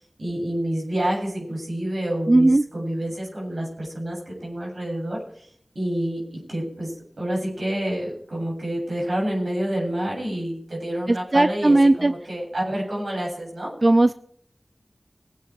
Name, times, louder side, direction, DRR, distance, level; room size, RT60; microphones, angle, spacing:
voice 1, 0.2-5.5 5.7-13.8, right 1 dB, 85° right, -2 dB, 7.8 m, -28 dB
voice 2, 2.3-2.6 11.1-12.1 13.8-14.1, right 2 dB, 50° right, 12 dB, 0.5 m, -17 dB
22.0 x 8.8 x 4.7 m, 0.64 s
wide cardioid pair, 45°, 0 cm